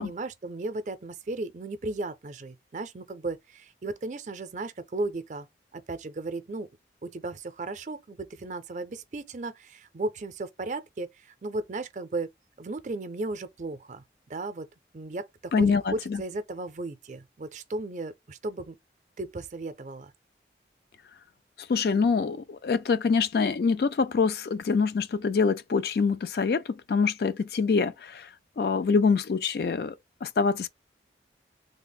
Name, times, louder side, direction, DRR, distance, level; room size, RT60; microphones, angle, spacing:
voice 1, 0.0-5.5 5.7-6.7 7.0-12.3 12.6-14.7 14.9-18.8 19.2-20.1, right 2 dB, 45° right, 0.4 m, -35 dB
voice 2, 15.5-16.2 21.7-26.6 26.9-28.3 28.6-29.9 30.2-30.7, left 5 dB, 60° left, 0.3 m, -25 dB
3.3 x 2.0 x 3.9 m
head